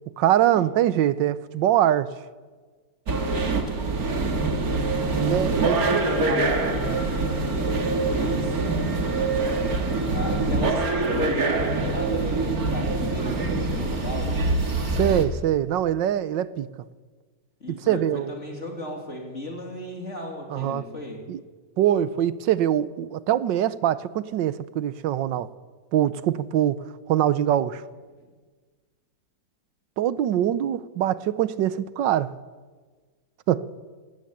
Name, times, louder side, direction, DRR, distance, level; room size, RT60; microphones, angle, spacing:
voice 1, 0.2-2.1 5.1-6.4 14.9-16.7 17.9-18.3 20.5-20.8 21.3-21.4 21.8-25.5 25.9-27.8 30.0-32.3 33.5-33.7, right 11 dB, 80° right, 1.5 m, -23 dB
sound 1, 3.1-15.3, right 3 dB, 55° right, 2.5 m, -24 dB
voice 2, 5.7-7.1 7.5-8.7 9.1-9.8 10.1-14.5 17.6-21.3 28.2-28.3, left 1 dB, 40° left, 3.1 m, -36 dB
20.0 x 17.0 x 8.7 m
omnidirectional pair, 2.0 m